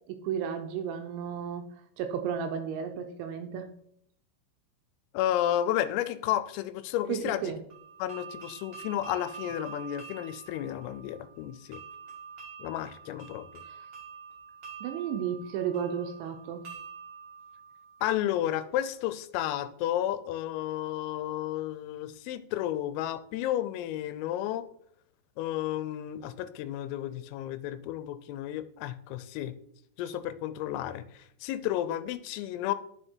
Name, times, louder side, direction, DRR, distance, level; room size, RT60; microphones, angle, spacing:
voice 1, 0.0-1.7 2.0-3.7 7.1-7.6 13.7-13.8 14.8-16.6, right 8 dB, 80° right, 6 dB, 2.8 m, -33 dB
voice 2, 5.2-7.5 8.0-11.8 12.6-13.6 18.0-24.7 25.4-29.5 30.0-32.7, left 12 dB, 90° left, 13 dB, 3.4 m, -32 dB
sound 1, 7.7-18.5, right 6 dB, 40° right, 1.9 m, -47 dB
10.0 x 7.1 x 4.5 m, 0.70 s
omnidirectional pair, 5.8 m